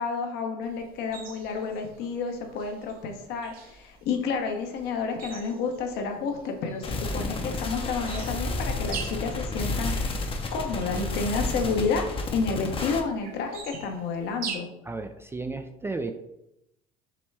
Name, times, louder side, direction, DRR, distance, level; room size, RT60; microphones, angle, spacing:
voice 1, 0.0-9.9 10.5-12.0 12.3-14.7, left 5 dB, 65° left, 4 dB, 0.9 m, -30 dB
sound 1, 0.6-14.6, right 6 dB, 55° right, 0.7 m, -45 dB
sound 2, 6.8-13.0, left 2 dB, 30° left, 0.7 m, -31 dB
voice 2, 14.8-16.1, right 3 dB, 15° right, 7 dB, 0.3 m, -33 dB
6.0 x 2.2 x 3.3 m, 0.86 s
supercardioid pair, 85°, 18 cm